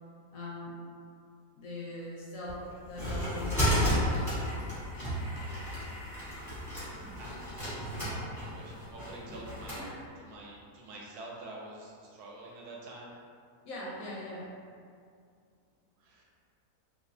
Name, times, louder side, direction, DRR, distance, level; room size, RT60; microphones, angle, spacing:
voice 1, 0.3-0.7 1.5-4.5 9.8-10.0 13.6-14.5, left 1 dB, 70° left, -6 dB, 0.9 m, -41 dB
sound 1, 2.5-9.8, equal, 15° left, 0.6 m, -33 dB
voice 2, 7.2-9.9 10.2-13.2 16.0-16.2, right 2 dB, 80° right, -3 dB, 1.1 m, -47 dB
3.1 x 2.1 x 2.6 m, 2.3 s
omnidirectional pair, 1.7 m